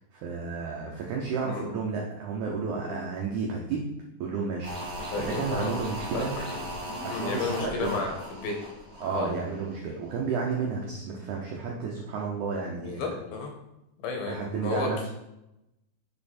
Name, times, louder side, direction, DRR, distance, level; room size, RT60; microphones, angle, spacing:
voice 1, 0.1-3.9 4.2-6.4 7.0-8.0 9.0-13.0 14.3-15.1, right 5 dB, 85° right, -1 dB, 1.7 m, -32 dB
sound 1, 4.6-9.8 10.1-10.2, equal, 45° right, 0.8 m, -37 dB
voice 2, 5.1-5.7 6.1-6.5 7.1-8.6 9.1-9.3 12.8-13.5 14.0-15.1, left 4 dB, 75° left, 2 dB, 2.5 m, -32 dB
6.7 x 5.4 x 4.2 m, 0.90 s
omnidirectional pair, 4.6 m